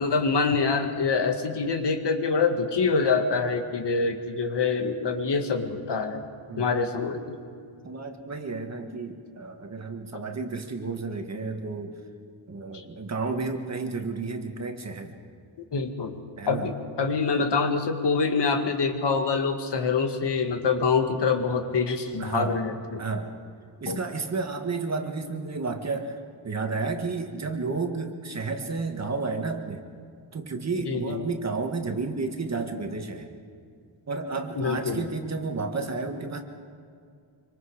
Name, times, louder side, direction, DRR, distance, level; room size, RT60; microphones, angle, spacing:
voice 1, 0.0-6.2 6.6-7.4 12.7-12.8 15.7-16.2 16.5-23.0 23.9-24.0 30.9-31.3 34.6-35.0, left 4 dB, 60° left, 5 dB, 2.1 m, -25 dB
voice 2, 7.8-11.9 12.5-15.2 16.4-16.7 22.2-22.6 23.0-23.3 23.8-29.8 30.3-33.3 34.1-36.4, right 4 dB, 35° right, 4 dB, 1.6 m, -31 dB
26.0 x 25.5 x 5.0 m, 2.3 s
wide cardioid pair, 180°, 47 cm